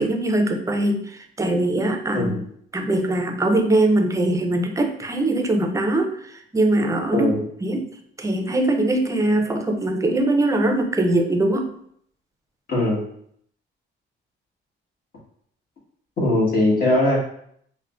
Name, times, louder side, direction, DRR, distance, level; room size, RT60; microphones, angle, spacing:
voice 1, 0.0-2.3 2.7-7.3 7.6-7.9 8.2-11.7, right 2 dB, 15° right, 5 dB, 0.5 m, -21 dB
voice 2, 2.1-2.4 7.1-7.4 12.7-13.0 16.2-17.2, left 1 dB, 50° left, -4 dB, 1.4 m, -20 dB
4.6 x 2.1 x 2.4 m, 0.66 s
cardioid pair, 90°, 20 cm